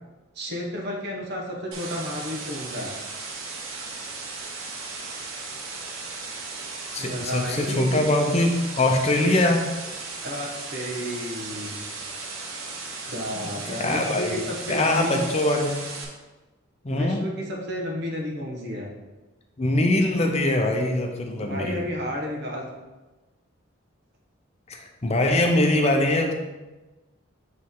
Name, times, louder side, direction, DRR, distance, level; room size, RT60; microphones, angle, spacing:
voice 1, 0.3-3.0 7.0-8.0 10.2-11.8 13.1-15.2 16.9-18.9 21.4-22.6, left 1 dB, 55° right, 0 dB, 1.0 m, -32 dB
sound 1, 1.7-16.0, right 3 dB, 90° right, 1.2 m, -36 dB
voice 2, 6.9-9.7 13.4-15.8 16.8-17.3 19.6-21.8 24.7-26.3, left 1 dB, 30° left, 3 dB, 0.6 m, -23 dB
7.9 x 3.2 x 3.7 m, 1.1 s
head